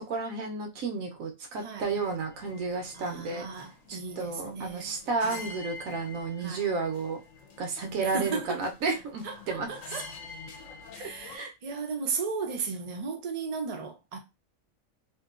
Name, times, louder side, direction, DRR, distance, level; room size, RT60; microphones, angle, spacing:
voice 1, 0.0-3.5 3.9-7.2 7.6-10.0 11.0-11.5, right 4 dB, 85° right, 1.1 m, -32 dB
voice 2, 1.6-1.9 2.9-5.5 6.4-6.6 7.8-8.6 9.2-10.1 10.9-14.2, right 5 dB, 45° right, 0.5 m, -35 dB
sound 1, 1.8-11.4, left 5 dB, 75° left, 0.9 m, -47 dB
2.8 x 2.6 x 2.4 m
omnidirectional pair, 1.4 m